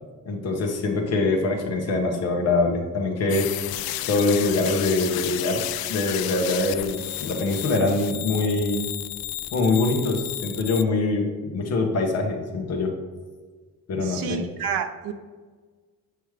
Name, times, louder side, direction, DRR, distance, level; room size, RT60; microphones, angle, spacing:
voice 1, 0.2-3.5 4.1-8.9 9.5-12.9 13.9-14.4, left 3 dB, 45° left, 1 dB, 1.2 m, -24 dB
sound 1, 3.3-10.8, left 14 dB, 90° left, 0.5 m, -32 dB
voice 2, 14.0-15.1, right 7 dB, 80° right, 7 dB, 0.7 m, -29 dB
7.9 x 5.4 x 3.3 m, 1.5 s
cardioid pair, 180°, 35 cm